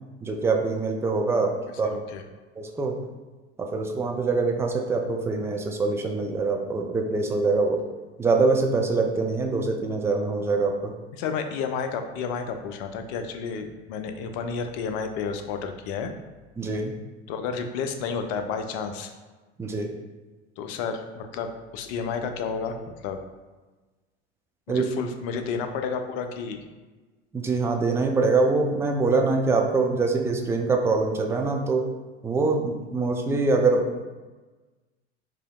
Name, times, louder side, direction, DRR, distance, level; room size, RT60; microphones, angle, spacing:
voice 1, 0.2-1.9 2.6-3.0 3.6-7.8 8.2-10.9 16.6-17.0 19.6-19.9 24.7-24.9 27.3-31.8 32.2-34.0, right 3 dB, 10° right, 2 dB, 0.3 m, -24 dB
voice 2, 1.8-2.2 11.2-16.1 17.3-19.1 20.6-22.8 23.0-23.2 24.7-26.6, left 5 dB, 50° left, 7 dB, 0.5 m, -31 dB
5.0 x 2.7 x 2.3 m, 1.3 s
figure-of-eight pair, 75°, 33 cm